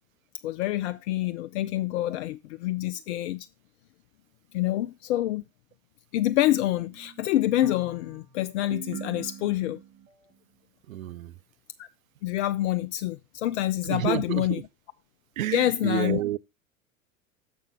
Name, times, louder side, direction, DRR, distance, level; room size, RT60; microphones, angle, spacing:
voice 1, 0.4-3.5 4.5-5.4 6.1-9.8 11.8-11.9 12.2-14.6 15.5-16.2, left 14 dB, 60° left, 0.5 m, -27 dB
sound 1, 6.5-10.1, right 7 dB, 35° right, 1.7 m, -44 dB
voice 2, 10.9-11.4 13.8-14.6 15.4-16.4, right 13 dB, 80° right, 0.5 m, -30 dB
6.9 x 4.7 x 5.2 m
figure-of-eight pair, 85°, 41 cm